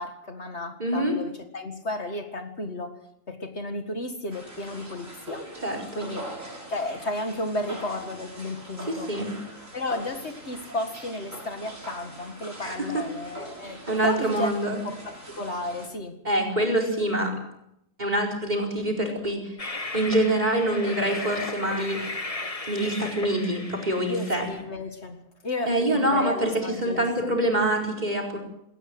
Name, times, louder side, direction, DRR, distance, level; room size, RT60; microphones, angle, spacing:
voice 1, 0.0-3.0 3.3-5.4 5.9-6.3 6.7-9.1 9.7-16.2 24.0-27.3, left 2 dB, 55° left, 6 dB, 2.2 m, -33 dB
voice 2, 0.8-1.2 5.5-6.1 8.8-9.3 12.6-13.0 13.9-14.8 16.2-17.4 18.0-19.6 19.9-22.1 22.7-24.5 25.7-28.4, right 1 dB, 35° right, 4 dB, 4.8 m, -25 dB
sound 1, 4.3-15.9, right 1 dB, 85° right, 6.4 m, -42 dB
Train, 19.6-24.6, left 2 dB, 25° left, 1.7 m, -35 dB
19.0 x 18.5 x 7.9 m, 0.80 s
omnidirectional pair, 1.3 m